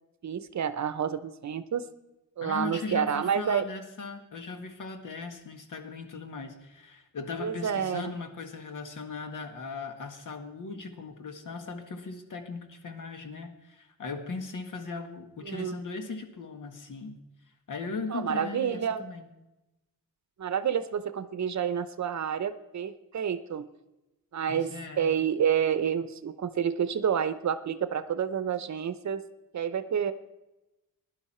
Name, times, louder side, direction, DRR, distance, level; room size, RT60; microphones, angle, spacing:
voice 1, 0.2-1.9 2.4-3.6 7.4-8.1 15.4-15.8 18.1-19.0 20.4-23.7 24.3-29.2 29.5-30.1, right 8 dB, 50° right, 13 dB, 0.8 m, -29 dB
voice 2, 2.4-17.2 17.7-19.3 24.5-25.1, left 4 dB, 60° left, 5 dB, 1.8 m, -38 dB
17.0 x 11.0 x 4.4 m, 0.98 s
cardioid pair, 120°, 36 cm